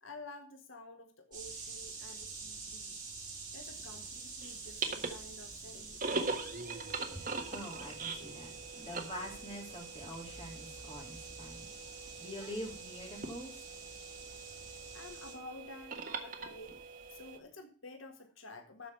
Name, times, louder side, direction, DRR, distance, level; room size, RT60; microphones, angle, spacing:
voice 1, 0.0-3.0 3.5-6.3 14.9-16.8 17.1-18.9, left 2 dB, 90° left, 5 dB, 1.6 m, -51 dB
sound 1, 1.3-15.3, right 4 dB, 25° right, 4.2 m, -48 dB
sound 2, 3.8-17.4, right 4 dB, 45° right, 1.5 m, -42 dB
voice 2, 6.8-13.5, equal, 30° left, -1 dB, 3.1 m, -46 dB
13.0 x 5.1 x 6.8 m, 0.39 s
head